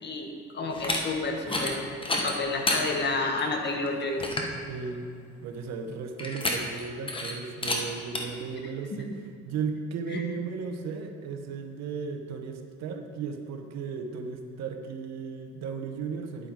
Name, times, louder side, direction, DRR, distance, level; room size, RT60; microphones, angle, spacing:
voice 1, 0.0-4.2 10.1-10.2, left 3 dB, 35° left, 3 dB, 1.3 m, -30 dB
sound 1, 0.7-1.0 1.4-1.7 2.0-2.8 3.4-3.5 3.9-4.0 4.2-4.5 6.2-6.8 7.1-7.3 7.6-7.8 8.2-8.3, left 2 dB, 20° left, 1.1 m, -29 dB
voice 2, 4.7-5.0 5.4-16.5, right 5 dB, 65° right, 5 dB, 1.0 m, -35 dB
9.7 x 7.8 x 4.7 m, 2.3 s
cardioid pair, 125°, 29 cm